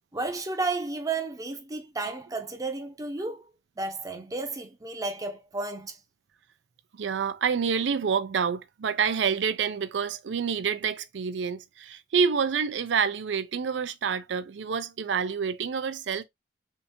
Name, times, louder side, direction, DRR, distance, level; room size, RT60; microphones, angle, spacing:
voice 1, 0.1-3.5 3.8-6.0, right 3 dB, 20° right, 0.6 m, -32 dB
voice 2, 7.0-16.2, right 6 dB, 85° right, 0.4 m, -28 dB
3.5 x 2.6 x 2.8 m
head